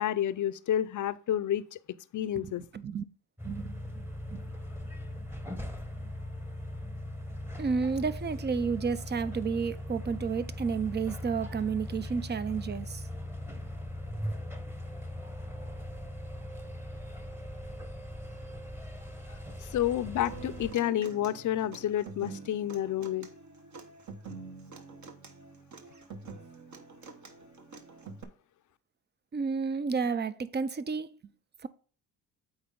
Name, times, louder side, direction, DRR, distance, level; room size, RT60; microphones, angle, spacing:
voice 1, 0.0-1.8 2.1-2.6 19.6-23.3, left 11 dB, 45° left, 0.6 m, -30 dB
voice 2, 2.3-3.0 3.4-4.0 4.3-4.5 7.6-13.0 19.3-19.4 29.3-31.2 31.6-31.7, right 5 dB, 25° right, 0.6 m, -31 dB
sound 1, 3.4-20.7, left 1 dB, 5° right, 1.1 m, -40 dB
Human voice / Acoustic guitar, 20.2-28.2, right 4 dB, 45° right, 1.3 m, -46 dB
7.9 x 4.3 x 3.9 m
supercardioid pair, 70°, 41 cm